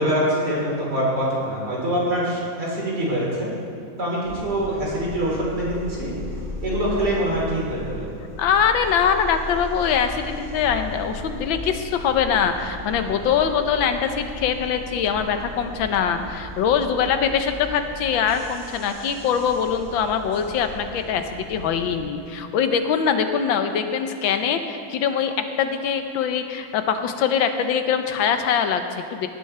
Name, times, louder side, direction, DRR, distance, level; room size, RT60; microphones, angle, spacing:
voice 1, 0.0-3.5 4.0-6.1 6.6-8.1, right 1 dB, 55° right, -6 dB, 4.3 m, -24 dB
sound 1, 4.2-21.9, left 1 dB, 10° right, 3.2 m, -37 dB
voice 2, 8.4-29.3, left 7 dB, 80° left, 7 dB, 1.5 m, -23 dB
18.0 x 11.5 x 3.3 m, 2.7 s
omnidirectional pair, 2.1 m